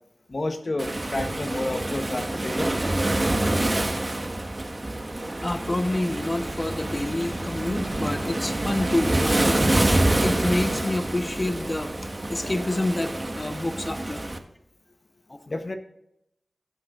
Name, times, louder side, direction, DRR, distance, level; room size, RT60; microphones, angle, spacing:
voice 1, 0.3-2.8 15.5-15.8, left 2 dB, 50° left, 5 dB, 1.1 m, -30 dB
Waves surf, 0.8-14.4, right 1 dB, 35° right, 1.5 m, -26 dB
voice 2, 5.4-11.9 12.3-14.2 15.3-15.4, left 1 dB, 30° left, 7 dB, 1.2 m, -28 dB
20.0 x 7.7 x 2.6 m, 0.79 s
cardioid pair, 55°, 0 cm